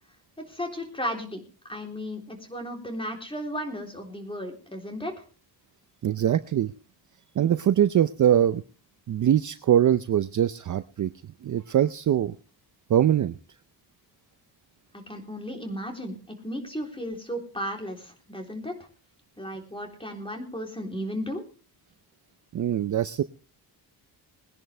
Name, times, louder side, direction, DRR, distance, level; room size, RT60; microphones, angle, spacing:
voice 1, 0.4-5.2 14.9-18.8 19.4-21.4, equal, 10° left, 3 dB, 3.5 m, -35 dB
voice 2, 6.0-6.7 7.4-8.6 9.1-11.1 11.4-12.4 12.9-13.3 22.5-23.2, right 10 dB, 45° right, 12 dB, 0.6 m, -22 dB
21.0 x 10.5 x 3.3 m, 0.37 s
cardioid pair, 95°, 44 cm